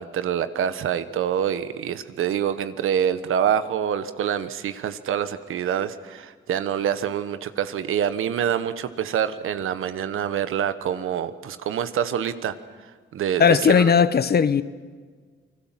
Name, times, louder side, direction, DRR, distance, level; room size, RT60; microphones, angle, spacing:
voice 1, 0.0-12.5 13.1-13.9, right 9 dB, 90° right, 1.3 m, -26 dB
voice 2, 13.4-14.6, left 6 dB, 50° left, 1.1 m, -17 dB
28.5 x 20.5 x 7.6 m
cardioid pair, 95°, 21 cm